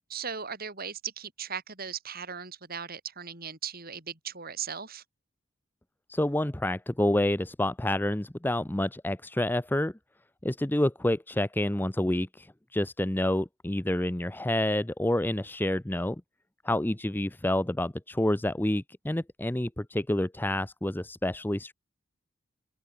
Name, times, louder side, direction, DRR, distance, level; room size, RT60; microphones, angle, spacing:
voice 1, 0.1-5.0, right 7 dB, 45° right, 4.8 m, -38 dB
voice 2, 6.1-9.9 10.4-16.2 16.6-21.7, left 1 dB, 10° left, 0.6 m, -28 dB
open air
head